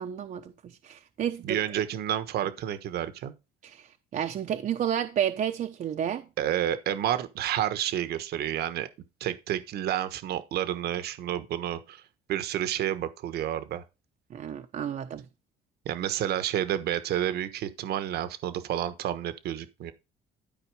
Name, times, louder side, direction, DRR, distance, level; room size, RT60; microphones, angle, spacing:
voice 1, 0.0-1.6 3.6-6.2 14.3-15.3, right 9 dB, 50° right, 0.9 m, -31 dB
voice 2, 1.4-3.3 6.4-8.9 9.2-12.0 12.3-13.8 15.8-19.9, right 11 dB, 70° right, 1.3 m, -30 dB
12.5 x 5.0 x 4.9 m
cardioid pair, 110°, 17 cm